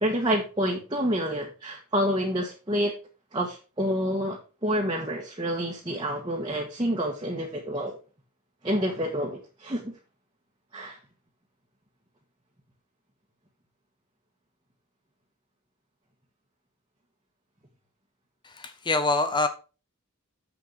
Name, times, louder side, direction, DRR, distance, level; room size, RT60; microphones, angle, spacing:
voice 1, 0.0-2.9 3.3-7.9 8.6-9.9 10.7-11.0, equal, 20° right, -2 dB, 1.5 m, -28 dB
voice 2, 18.4-19.5, left 3 dB, 20° left, 8 dB, 1.2 m, -25 dB
7.7 x 6.8 x 5.0 m, 0.33 s
head